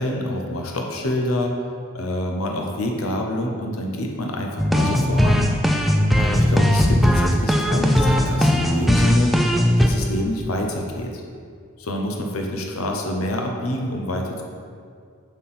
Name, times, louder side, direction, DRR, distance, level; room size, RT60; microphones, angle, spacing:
voice 1, 0.0-1.5 1.9-5.5 6.2-9.3 9.8-11.2 11.8-14.4, left 1 dB, 80° left, 1 dB, 0.8 m, -27 dB
sound 1, 4.6-9.9, equal, ahead, 0.3 m, -18 dB
7.1 x 5.6 x 4.3 m, 2.2 s
head